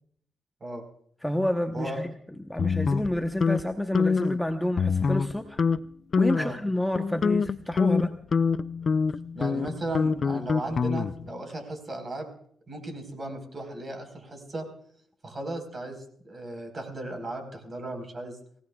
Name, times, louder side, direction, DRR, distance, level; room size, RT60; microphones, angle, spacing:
voice 1, 1.2-2.1 2.4-5.6 6.2-8.1, left 1 dB, 5° left, 5 dB, 1.0 m, -29 dB
sound 1, 2.6-3.6 3.9-4.4 4.8-5.3 5.6-5.8 6.1-6.6 7.0-11.3, left 5 dB, 50° left, 0.5 m, -25 dB
voice 2, 9.3-12.3 12.7-14.6 15.2-18.4, right 2 dB, 40° right, 5 dB, 4.5 m, -36 dB
25.0 x 17.0 x 2.4 m, 0.64 s
cardioid pair, 70°, 0 cm